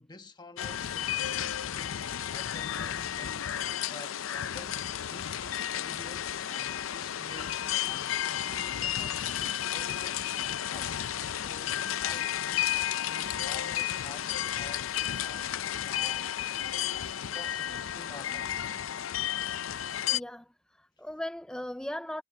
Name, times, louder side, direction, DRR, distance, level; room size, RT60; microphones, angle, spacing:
voice 1, 0.0-3.5 3.9-14.9 15.2-15.5 15.8-16.5 17.3-18.6, left 2 dB, 20° left, 1.3 m, -50 dB
sound 1, 0.6-20.2, left 11 dB, 85° left, 0.5 m, -32 dB
voice 2, 20.1-22.2, left 1 dB, 5° left, 0.4 m, -38 dB
head